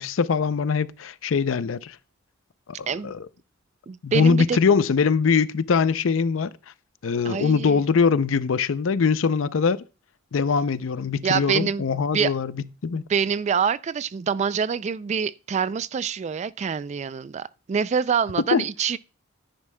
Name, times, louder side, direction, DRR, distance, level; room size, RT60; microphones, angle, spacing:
voice 1, 0.0-2.0 2.8-3.2 4.0-6.5 7.0-9.8 10.3-13.0 18.5-18.6, left 5 dB, 75° left, 0.5 m, -22 dB
voice 2, 3.9-4.6 7.2-7.8 11.2-12.4 12.9-19.0, right 6 dB, 35° right, 0.3 m, -26 dB
10.5 x 9.7 x 2.2 m
head